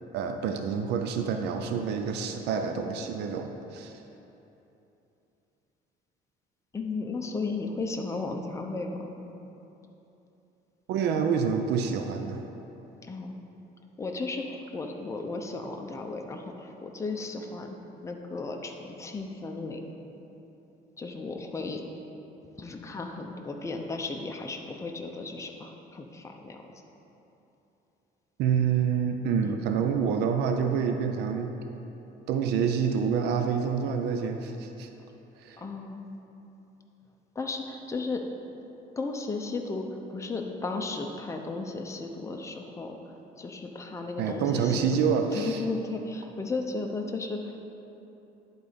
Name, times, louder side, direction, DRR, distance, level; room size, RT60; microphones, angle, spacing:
voice 1, 0.1-4.0 10.9-12.4 28.4-31.5 32.3-34.9 35.4-35.6 44.2-45.6, right 6 dB, 80° right, 5 dB, 0.5 m, -27 dB
voice 2, 6.7-9.1 13.0-13.4 14.0-17.8 18.0-19.8 21.0-21.8 22.6-26.7 29.4-29.6 35.6-36.1 37.3-38.2 39.0-44.9 45.3-47.7, left 3 dB, 15° left, 2 dB, 0.7 m, -35 dB
10.5 x 4.0 x 5.1 m, 3.0 s
cardioid pair, 110°, 17 cm